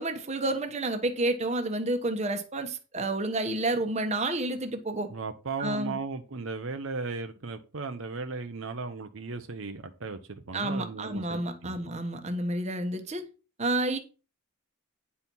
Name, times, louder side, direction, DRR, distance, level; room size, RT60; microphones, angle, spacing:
voice 1, 0.0-5.1 5.6-6.0 10.5-13.2 13.6-14.0, right 2 dB, 30° right, 1.1 m, -30 dB
voice 2, 5.1-11.8, right 4 dB, 65° right, 0.8 m, -36 dB
9.6 x 4.5 x 5.4 m
head